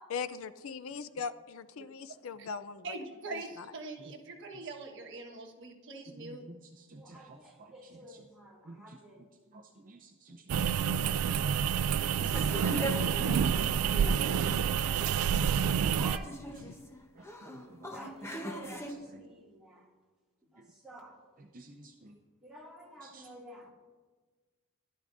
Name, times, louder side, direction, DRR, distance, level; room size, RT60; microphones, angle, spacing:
voice 1, 0.1-2.9 3.3-3.7 16.6-16.7, left 5 dB, 65° left, 13 dB, 0.4 m, -40 dB
voice 2, 2.8-6.4, right 3 dB, 55° right, 2 dB, 1.3 m, -43 dB
voice 3, 6.2-8.2 8.6-15.6 16.5-16.8 17.1-19.2 20.6-20.7 21.4-22.2 23.0-23.3, right 2 dB, 40° right, 1 dB, 0.6 m, -54 dB
voice 4, 7.0-9.2 14.3-16.8 17.2-17.3 17.8-19.9 20.5-21.2 22.4-23.7, right 1 dB, 5° right, -5 dB, 2.2 m, -50 dB
sound 1, 10.5-16.2, right 7 dB, 85° right, 0.3 m, -28 dB
sound 2, 12.2-18.9, equal, 10° left, 0.8 m, -41 dB
16.5 x 11.5 x 2.5 m, 1.3 s
head